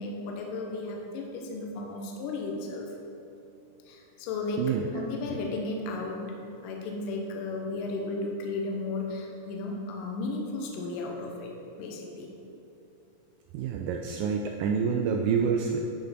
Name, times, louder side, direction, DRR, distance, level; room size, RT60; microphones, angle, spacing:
voice 1, 0.0-2.9 3.9-6.2 6.6-11.5 11.8-12.3 14.9-15.1, left 3 dB, 70° left, 0 dB, 2.4 m, -34 dB
voice 2, 13.5-15.8, right 6 dB, 85° right, 2 dB, 2.0 m, -27 dB
10.5 x 5.4 x 5.1 m, 2.9 s
omnidirectional pair, 4.4 m